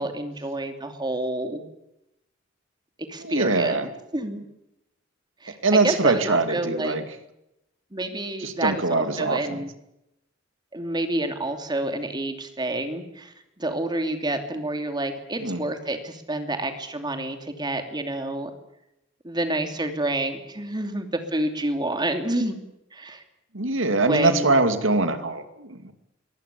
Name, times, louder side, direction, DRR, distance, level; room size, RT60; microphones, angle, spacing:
voice 1, 0.0-1.6 3.1-4.4 5.4-7.0 7.9-9.7 10.7-18.5 19.2-22.6 22.9-23.2 24.1-24.5, right 1 dB, 25° right, 6 dB, 2.8 m, -28 dB
voice 2, 3.2-3.9 5.6-7.0 8.4-9.6 15.4-15.6 23.5-25.9, right 3 dB, 85° right, 9 dB, 2.5 m, -23 dB
23.0 x 18.5 x 8.5 m, 0.85 s
head